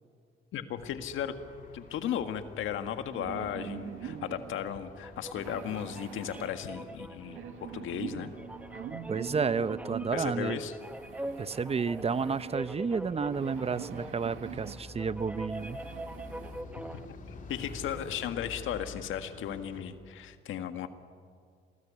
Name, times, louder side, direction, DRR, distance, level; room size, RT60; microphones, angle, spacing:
voice 1, 0.5-1.4 1.7-8.3 10.1-10.7 17.5-20.9, left 9 dB, 80° left, 8 dB, 1.8 m, -35 dB
sound 1, 0.8-19.9, left 3 dB, 40° left, 3.8 m, -50 dB
sound 2, 3.1-4.6 5.4-6.5 7.2-10.1 10.8-12.6 13.3-14.8 15.5-16.6 17.1-17.2 17.5-18.3, right 8 dB, 85° right, 1.9 m, -44 dB
sound 3, 5.0-17.1, right 1 dB, 5° right, 1.0 m, -43 dB
voice 2, 9.1-10.6 11.4-15.8, right 5 dB, 30° right, 15 dB, 0.8 m, -31 dB
27.5 x 19.5 x 8.6 m, 2.2 s
cardioid pair, 90°, 20 cm